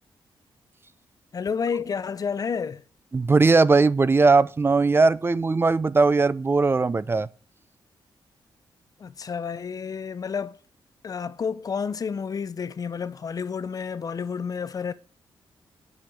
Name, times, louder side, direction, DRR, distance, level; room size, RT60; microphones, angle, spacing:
voice 1, 1.3-2.8 9.0-10.6 11.0-14.9, left 6 dB, 45° left, 0.6 m, -30 dB
voice 2, 3.1-7.3, right 3 dB, 25° right, 0.5 m, -19 dB
8.8 x 6.4 x 7.9 m
wide cardioid pair, 130°, 9 cm